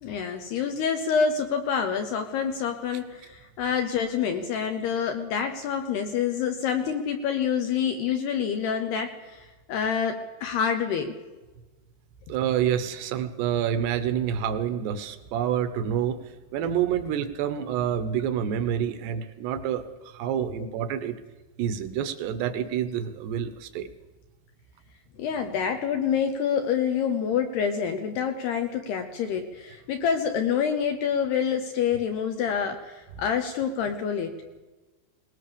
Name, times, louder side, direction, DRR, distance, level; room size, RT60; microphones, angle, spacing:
voice 1, 0.0-11.2 25.2-34.3, left 7 dB, 70° left, 5 dB, 2.9 m, -27 dB
voice 2, 12.3-16.2 16.5-21.2 21.6-23.9, right 9 dB, 70° right, 11 dB, 3.0 m, -28 dB
20.0 x 20.0 x 7.0 m, 1.2 s
omnidirectional pair, 5.4 m